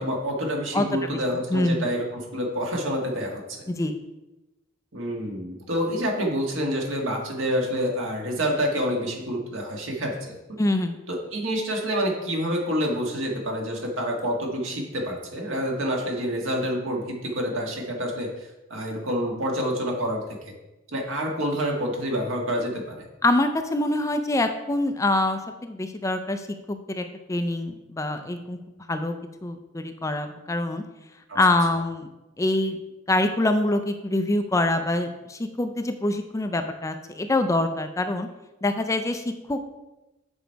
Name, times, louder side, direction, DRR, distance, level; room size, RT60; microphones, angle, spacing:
voice 1, 0.0-3.7 4.9-10.6 11.1-20.5 20.9-23.1 31.3-31.4, equal, 75° right, 0 dB, 1.6 m, -28 dB
voice 2, 1.5-1.9 3.7-3.9 10.6-11.0 23.2-28.6 28.9-29.1 29.4-30.8 31.3-32.1 32.4-32.8 33.1-38.3 38.6-39.6, left 2 dB, 15° left, 7 dB, 0.4 m, -25 dB
7.1 x 5.1 x 4.5 m, 1.0 s
head